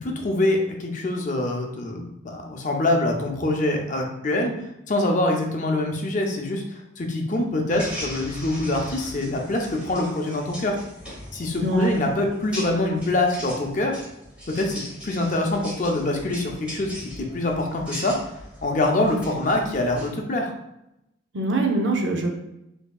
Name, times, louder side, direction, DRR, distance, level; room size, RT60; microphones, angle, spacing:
voice 1, 0.0-4.5 4.9-10.8 11.3-14.0 14.5-16.9 17.2-18.2 18.6-20.5, left 2 dB, 40° left, 2 dB, 0.5 m, -24 dB
sound 1, 7.7-20.1, equal, 5° right, 1.0 m, -39 dB
voice 2, 11.6-12.0 21.3-22.3, right 2 dB, 65° right, 2 dB, 0.6 m, -23 dB
4.5 x 2.7 x 2.3 m, 0.86 s
head